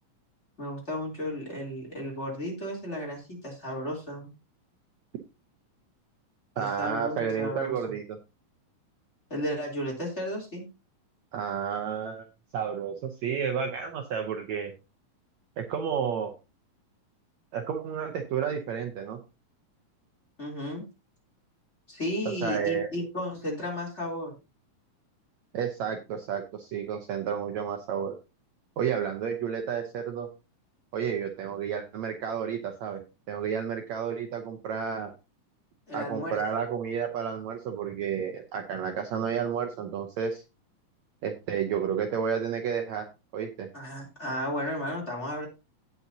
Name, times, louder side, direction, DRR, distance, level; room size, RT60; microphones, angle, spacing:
voice 1, 0.6-4.3 6.5-8.0 9.3-10.6 20.4-20.9 21.9-24.4 35.9-36.6 43.7-45.5, left 1 dB, 20° left, -1 dB, 3.1 m, -34 dB
voice 2, 6.6-8.2 11.3-12.3 12.5-14.7 15.6-16.3 17.5-19.2 22.4-22.9 25.5-28.2 28.8-30.3 30.9-33.0 33.3-35.1 35.9-40.4 41.2-43.1 43.3-43.7, right 7 dB, 70° right, 4 dB, 1.9 m, -31 dB
17.5 x 6.1 x 2.8 m, 0.27 s
omnidirectional pair, 4.0 m